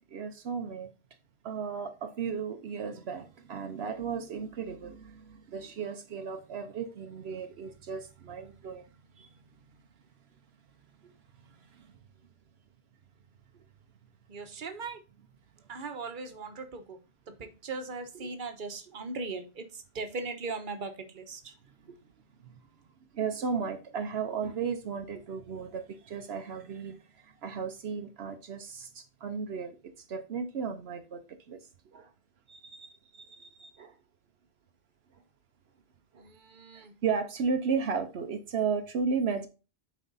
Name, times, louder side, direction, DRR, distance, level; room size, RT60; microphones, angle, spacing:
voice 1, 0.1-0.9 1.4-8.9 9.2-9.3 11.5-11.9 22.4-22.6 23.1-31.7 31.9-32.1 32.5-34.0 36.1-36.3 36.7-39.5, right 5 dB, 80° right, 1.0 m, -35 dB
voice 2, 14.3-15.0 15.7-17.0 17.4-21.5 21.9-22.0 36.1-36.9, right 3 dB, 55° right, 1.2 m, -39 dB
9.3 x 4.2 x 4.0 m
omnidirectional pair, 1.1 m